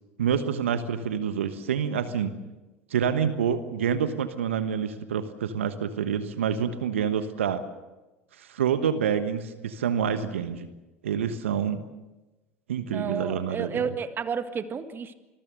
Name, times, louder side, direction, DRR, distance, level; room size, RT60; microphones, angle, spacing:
voice 1, 0.2-2.4 2.9-7.6 8.4-10.7 11.0-11.9 12.7-13.8, right 8 dB, 75° right, 11 dB, 1.3 m, -27 dB
voice 2, 12.9-15.1, right 6 dB, 30° right, 10 dB, 1.8 m, -31 dB
26.5 x 21.0 x 6.8 m, 1.1 s
figure-of-eight pair, 75°, 7 cm